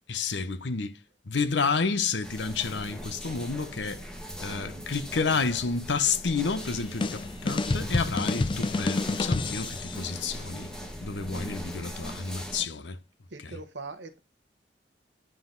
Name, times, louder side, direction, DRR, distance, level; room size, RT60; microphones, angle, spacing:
voice 1, 0.1-0.9 1.3-4.0 4.4-10.7 11.0-13.0 13.4-13.6, left 5 dB, 85° left, 0.8 m, -30 dB
sound 1, 2.2-12.7, equal, 5° left, 1.1 m, -40 dB
sound 2, 6.6-10.1, left 3 dB, 30° left, 0.4 m, -29 dB
voice 2, 13.3-14.2, right 3 dB, 85° right, 1.1 m, -41 dB
9.2 x 3.9 x 3.9 m
head